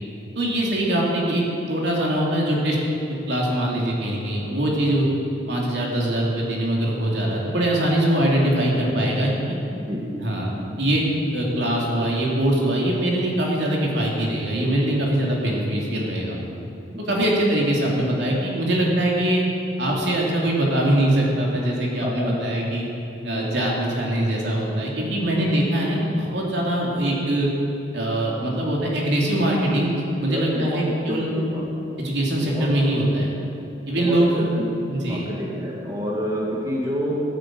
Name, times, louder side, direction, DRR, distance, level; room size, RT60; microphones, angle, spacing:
voice 1, 0.3-2.8 3.3-5.1 5.5-9.3 10.0-16.4 17.1-19.4 19.8-22.9 23.2-27.5 27.9-31.3 32.0-33.3 33.9-34.4 34.9-35.3, right 1 dB, 65° right, -3 dB, 3.0 m, -22 dB
voice 2, 22.0-22.3 30.3-30.8 31.1-31.6 32.4-32.7 34.0-34.7 35.0-37.4, equal, 20° right, -4 dB, 2.0 m, -28 dB
15.5 x 9.6 x 7.8 m, 2.9 s
head